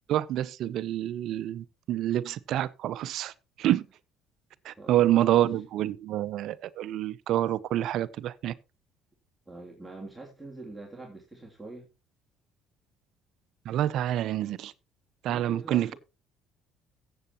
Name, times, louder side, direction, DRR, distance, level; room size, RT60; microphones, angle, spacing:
voice 1, 0.1-3.3 3.6-3.8 4.6-8.5 13.7-14.7 15.2-15.9, right 13 dB, 65° right, 0.6 m, -27 dB
voice 2, 4.8-5.4 9.5-11.9 15.3-15.9, right 2 dB, 10° right, 3.2 m, -45 dB
14.5 x 7.9 x 2.9 m
supercardioid pair, 70°, 0 cm